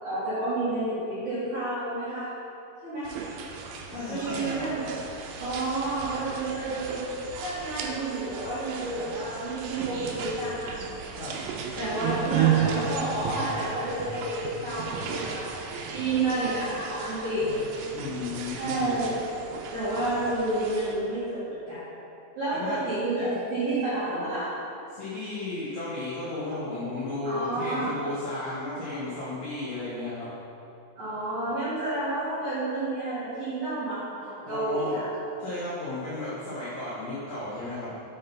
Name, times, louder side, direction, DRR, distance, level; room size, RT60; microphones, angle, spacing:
voice 1, 0.0-2.3 2.8-3.1 4.1-4.9 5.4-7.0 7.4-10.8 11.8-15.4 15.9-17.5 18.6-19.2 19.7-21.8 22.4-24.5 27.2-27.9 31.0-35.1, right 2 dB, 60° right, -13 dB, 2.1 m, -30 dB
sound 1, 3.0-21.0, right 7 dB, 90° right, 3.2 m, -34 dB
voice 2, 3.9-4.8 11.2-11.4 17.9-19.0 22.6-22.8 24.9-30.3 34.5-35.0 35.4-38.0, left 2 dB, 75° left, -10 dB, 2.0 m, -34 dB
7.4 x 5.6 x 3.9 m, 2.8 s
omnidirectional pair, 5.7 m